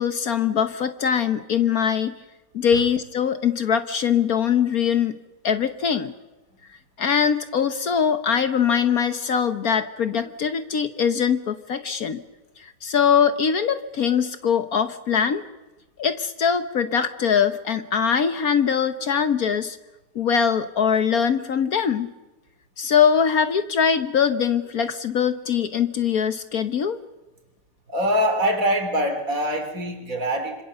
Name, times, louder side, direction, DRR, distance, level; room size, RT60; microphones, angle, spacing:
voice 1, 0.0-2.1 2.5-5.2 5.4-6.1 7.0-12.2 12.6-15.4 16.0-19.8 20.1-22.1 22.8-27.0, left 7 dB, 60° left, 10 dB, 1.4 m, -22 dB
voice 2, 27.9-30.6, equal, 50° right, 6 dB, 3.7 m, -23 dB
26.0 x 26.0 x 6.9 m, 1.1 s
omnidirectional pair, 1.9 m